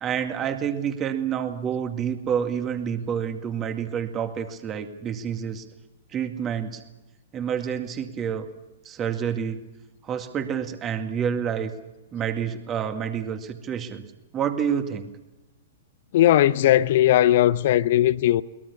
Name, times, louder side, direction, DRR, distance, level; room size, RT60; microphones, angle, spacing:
voice 1, 0.0-5.6 6.1-6.8 7.3-8.5 8.9-9.7 10.0-11.7 12.1-14.1 14.3-15.1, right 8 dB, 25° right, 2.2 m, -28 dB
voice 2, 16.1-18.4, left 13 dB, 50° left, 0.9 m, -18 dB
22.0 x 21.5 x 7.1 m
figure-of-eight pair, 105°, 0 cm